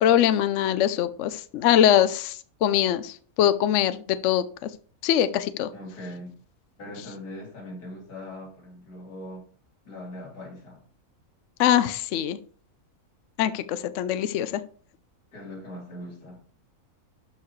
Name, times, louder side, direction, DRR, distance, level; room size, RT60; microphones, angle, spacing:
voice 1, 0.0-4.4 5.0-5.7 11.6-12.4 13.4-14.6, left 11 dB, 65° left, 0.8 m, -22 dB
voice 2, 5.7-6.4 6.8-9.5 9.8-10.8 15.3-16.4, left 1 dB, 85° left, 3.1 m, -40 dB
12.5 x 4.7 x 3.1 m
omnidirectional pair, 1.6 m